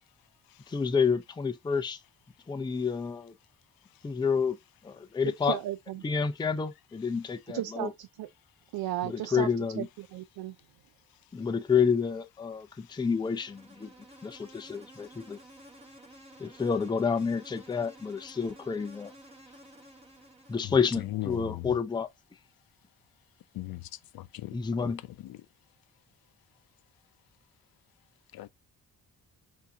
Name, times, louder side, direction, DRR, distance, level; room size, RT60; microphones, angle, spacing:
voice 1, 0.7-2.0 2.5-3.3 4.0-4.6 4.8-5.6 6.0-7.9 9.0-9.9 11.3-13.9 14.2-15.4 16.4-19.1 20.5-22.1 24.5-25.0, left 6 dB, 15° left, 0.4 m, -29 dB
voice 2, 5.3-6.0 7.5-8.3 8.7-9.5 9.8-10.5, right 13 dB, 85° right, 0.5 m, -35 dB
Insect, 12.9-21.1, right 1 dB, 15° right, 1.7 m, -53 dB
voice 3, 21.1-21.7 23.6-23.8 24.1-24.9 28.3-28.5, left 16 dB, 80° left, 0.5 m, -37 dB
5.5 x 2.7 x 3.5 m
cardioid pair, 135°, 36 cm